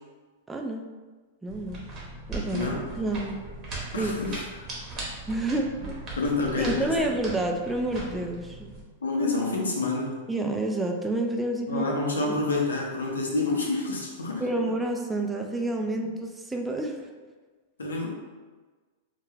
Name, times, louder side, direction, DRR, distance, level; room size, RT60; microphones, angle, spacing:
voice 1, 0.5-0.9 1.4-1.9 2.3-2.7 3.0-3.4 3.9-4.4 5.3-6.0 6.6-8.8 10.3-11.9 12.2-12.4 14.4-17.1, right 1 dB, 10° right, 2 dB, 0.3 m, -29 dB
sound 1, 1.5-8.8, right 2 dB, 35° right, 0.8 m, -39 dB
voice 2, 2.5-2.8 3.9-4.4 6.2-7.1 9.0-10.2 11.7-14.4 17.8-18.1, left 3 dB, 90° left, -1 dB, 0.6 m, -28 dB
2.2 x 2.2 x 3.1 m, 1.3 s
hypercardioid pair, 105°, 0 cm